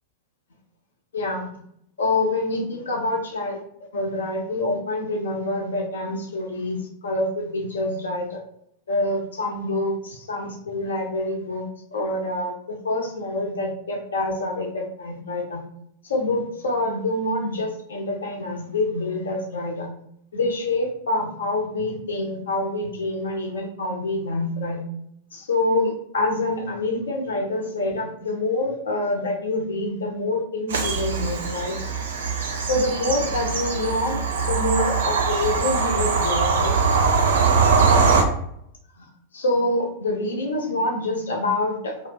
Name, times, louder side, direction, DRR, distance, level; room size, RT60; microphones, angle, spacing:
voice 1, 1.1-1.5 2.0-3.6 3.9-8.4 8.9-15.6 16.0-19.9 20.3-24.8 25.3-31.8 32.6-36.7 39.3-42.1, left 2 dB, 65° left, 1 dB, 0.6 m, -26 dB
Bird vocalization bird call bird song / Train, 30.7-38.2, right 5 dB, 65° right, 0.4 m, -22 dB
2.4 x 2.0 x 3.3 m, 0.72 s
figure-of-eight pair, 90°, 0 cm